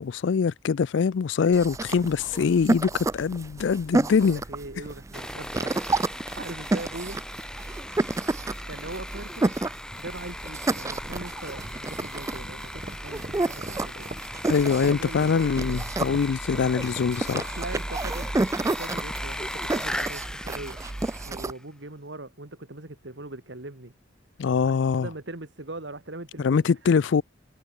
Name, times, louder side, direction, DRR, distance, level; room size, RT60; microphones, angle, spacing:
voice 1, 0.0-4.4 14.5-17.5 24.4-25.1 26.4-27.2, left 6 dB, 65° left, 0.4 m, -23 dB
sound 1, 1.5-21.5, right 2 dB, 15° right, 0.3 m, -30 dB
voice 2, 4.0-5.8 6.4-7.2 8.7-9.5 10.0-14.1 14.7-15.5 16.6-16.7 17.6-20.8 21.3-23.9 24.7-26.7, right 2 dB, 60° right, 2.1 m, -40 dB
Sawing, 5.1-21.6, left 1 dB, 5° left, 1.6 m, -38 dB
sound 2, 10.6-17.2, right 1 dB, 30° right, 1.6 m, -42 dB
head